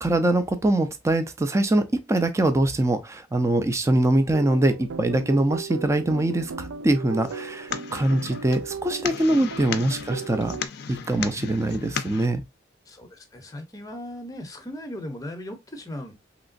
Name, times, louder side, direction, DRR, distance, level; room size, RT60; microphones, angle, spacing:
voice 1, 0.0-10.5 10.9-12.4, right 1 dB, 15° right, 0.4 m, -23 dB
sound 1, 4.3-10.7, right 5 dB, 85° right, 0.4 m, -36 dB
sound 2, 7.2-12.3, left 7 dB, 55° left, 0.4 m, -35 dB
voice 2, 12.9-16.1, left 1 dB, 20° left, 0.7 m, -37 dB
3.2 x 2.9 x 2.5 m
head